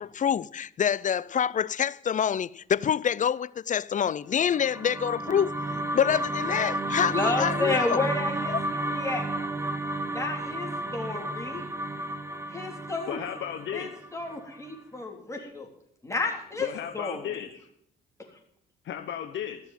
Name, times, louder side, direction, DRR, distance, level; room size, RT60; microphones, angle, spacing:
voice 1, 0.0-5.7 5.9-8.0 8.5-8.6, left 8 dB, 40° left, 0.4 m, -26 dB
sound 1, 4.4-14.7, right 1 dB, 15° right, 1.3 m, -32 dB
voice 2, 7.1-9.3 10.1-11.6 12.5-13.2 13.7-15.7 16.0-17.2, left 3 dB, 15° left, 3.7 m, -31 dB
voice 3, 13.1-13.9 16.6-17.5 18.8-19.6, left 9 dB, 70° left, 1.1 m, -34 dB
14.0 x 6.9 x 9.2 m
cardioid pair, 90°, 20 cm